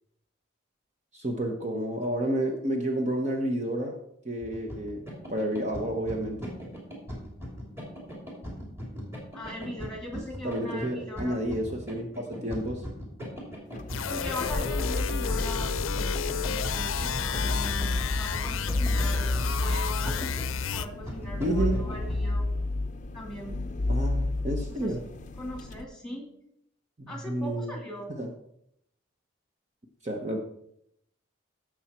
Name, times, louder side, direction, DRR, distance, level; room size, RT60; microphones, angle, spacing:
voice 1, 1.1-3.9 4.2-5.0 5.3-6.5 10.4-12.9 21.4-21.8 23.9-25.0 27.0-27.8 28.1-28.3 30.0-30.4, right 1 dB, 35° right, 2 dB, 1.0 m, -30 dB
sound 1, 4.4-22.2, equal, 10° right, 3.0 m, -39 dB
voice 2, 9.3-11.4 14.1-15.9 16.4-20.3 20.7-22.4 23.1-23.6 25.4-26.3 27.1-28.1, equal, 5° left, 1 dB, 2.6 m, -40 dB
sound 2, 13.7-25.8, left 2 dB, 40° left, 0.6 m, -31 dB
sound 3, 13.9-20.9, left 7 dB, 85° left, 0.5 m, -32 dB
15.5 x 6.3 x 4.4 m, 0.73 s
head